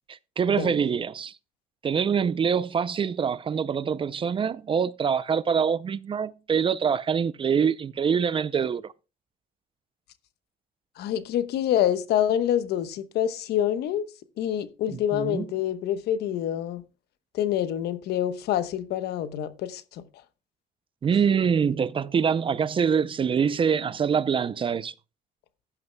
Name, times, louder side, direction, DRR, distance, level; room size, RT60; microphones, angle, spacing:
voice 1, 0.1-1.3 1.8-8.9 14.9-15.5 21.0-24.9, right 7 dB, 30° right, 0.5 m, -25 dB
voice 2, 11.0-14.1 14.4-16.8 17.3-20.0, left 10 dB, 75° left, 1.0 m, -26 dB
15.0 x 11.0 x 2.2 m
cardioid pair, 110°, 17 cm